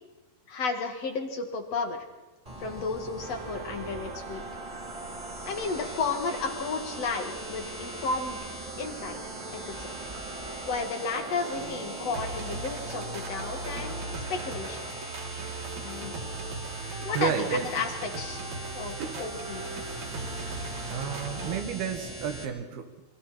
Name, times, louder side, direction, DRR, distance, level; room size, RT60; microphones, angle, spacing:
voice 1, 0.5-2.0 2.6-4.5 5.5-8.4 8.8-9.2 9.5-9.9 10.7-14.0 14.3-14.8 15.8-16.2 17.0-18.4 18.7-19.8, left 4 dB, 45° left, 5 dB, 2.7 m, -33 dB
sound 1, 2.4-22.4, right 1 dB, 10° right, 3.0 m, -41 dB
sound 2, 3.2-21.6, right 3 dB, 50° right, 3.2 m, -39 dB
voice 2, 17.2-17.7 19.0-19.2 20.9-23.1, right 7 dB, 75° right, 6 dB, 3.7 m, -31 dB
27.0 x 25.0 x 4.4 m, 1.1 s
omnidirectional pair, 4.6 m